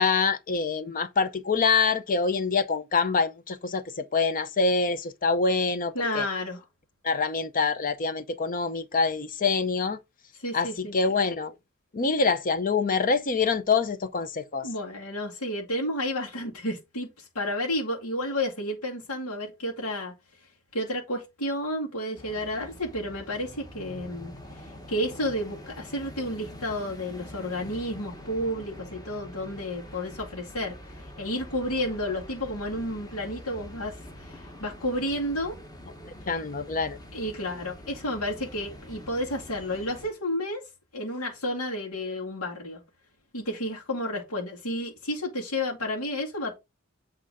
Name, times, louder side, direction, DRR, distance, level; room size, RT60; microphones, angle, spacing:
voice 1, 0.0-6.3 7.0-10.0 10.5-11.5 11.9-14.7 36.1-37.0, left 4 dB, 40° left, 0.6 m, -25 dB
voice 2, 5.9-6.6 10.4-10.9 14.6-20.1 20.7-30.7 31.2-35.6 37.1-40.6 40.9-42.8 43.3-46.6, left 1 dB, 80° left, 2.3 m, -31 dB
sound 1, 22.1-40.1, equal, 20° left, 1.3 m, -45 dB
8.1 x 3.7 x 4.8 m
head